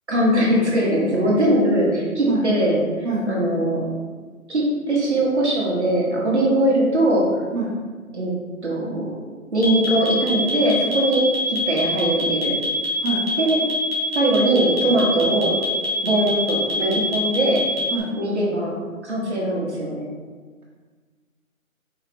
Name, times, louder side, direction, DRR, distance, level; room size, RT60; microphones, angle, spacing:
voice 1, 0.1-3.9 4.5-7.4 8.1-8.4 8.6-9.1 9.5-12.6 13.4-13.6 14.1-15.6 16.0-17.7 18.2-20.1, right 1 dB, 50° right, -4 dB, 1.3 m, -21 dB
voice 2, 2.3-2.5 3.0-3.3 7.5-7.7 13.0-13.3 17.9-18.1, right 3 dB, 75° right, -7 dB, 1.1 m, -25 dB
sound 1, 9.6-18.0, left 3 dB, 45° left, 1.2 m, -25 dB
4.7 x 3.2 x 3.3 m, 1.5 s
figure-of-eight pair, 180°, 43 cm